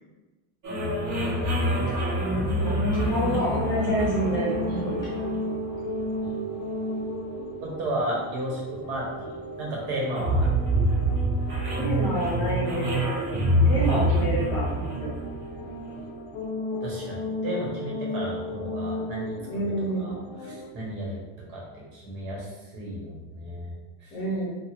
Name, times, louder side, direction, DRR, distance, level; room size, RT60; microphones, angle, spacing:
sound 1, 0.6-16.0, right 1 dB, 60° right, 1.1 m, -27 dB
voice 1, 1.0-1.9 6.2-6.4 7.6-10.6 16.8-19.7 20.0-20.2 20.4-23.7 24.0-24.1, right 1 dB, 80° right, -3 dB, 1.3 m, -34 dB
voice 2, 2.6-5.3 11.7-13.2 13.6-15.1 19.5-20.1 24.1-24.5, equal, 10° left, -6 dB, 0.8 m, -28 dB
sound 2, 3.5-20.7, left 2 dB, 65° left, 0.5 m, -35 dB
3.0 x 2.3 x 2.9 m, 1.1 s
cardioid pair, 180°, 43 cm